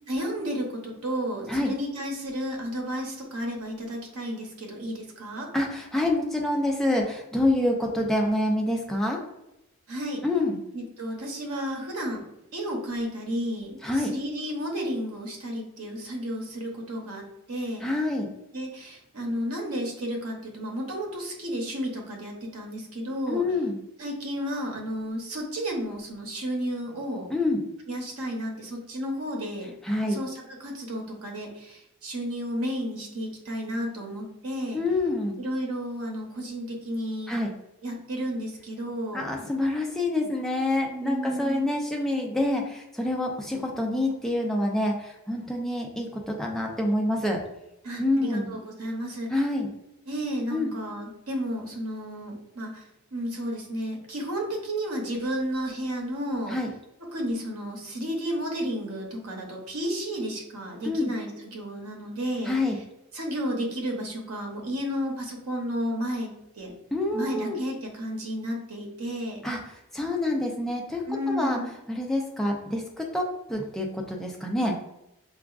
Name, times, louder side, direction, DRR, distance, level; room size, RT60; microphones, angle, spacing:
voice 1, 0.1-5.5 9.9-10.2 10.7-12.2 12.5-17.9 18.5-23.4 24.0-27.3 27.9-29.7 30.1-34.8 35.4-37.3 37.8-39.3 40.9-41.8 47.8-49.3 50.1-56.6 57.1-62.5 63.1-66.7 67.1-69.4 71.1-71.7, equal, 90° right, 1 dB, 0.8 m, -32 dB
voice 2, 5.5-9.2 10.2-10.6 13.8-14.1 17.8-18.3 23.3-23.8 27.3-27.6 29.8-30.2 34.7-35.3 37.3-37.5 39.1-47.4 48.0-48.5 49.3-49.7 50.5-50.7 56.5-56.7 60.8-61.1 62.5-62.8 66.9-67.6 69.4-69.6 69.9-71.6 71.9-74.8, left 1 dB, ahead, 0 dB, 0.4 m, -27 dB
4.7 x 2.3 x 2.4 m, 0.87 s
head